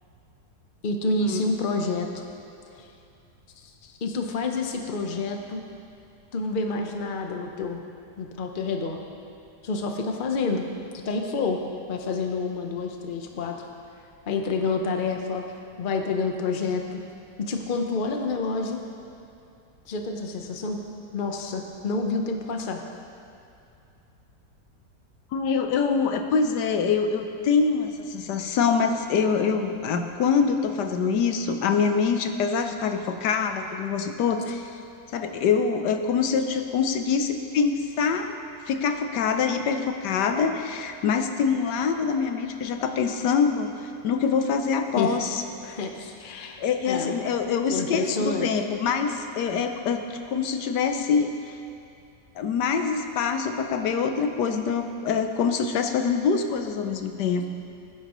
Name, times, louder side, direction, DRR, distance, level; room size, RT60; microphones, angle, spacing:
voice 1, 0.8-2.1 2.8-2.9 3.8-5.6 6.3-7.8 8.2-9.0 9.6-10.7 11.0-11.6 11.9-13.6 14.3-15.5 15.8-17.0 17.4-18.8 19.9-20.8 21.1-22.8 45.0-45.1 45.6-47.2 47.7-48.5, left 3 dB, 40° left, 3 dB, 0.9 m, -28 dB
voice 2, 25.3-34.8 35.1-38.4 38.7-45.4 46.6-51.5 52.4-57.5, left 6 dB, 85° left, 6 dB, 1.4 m, -25 dB
19.0 x 9.9 x 3.1 m, 2.6 s
omnidirectional pair, 1.8 m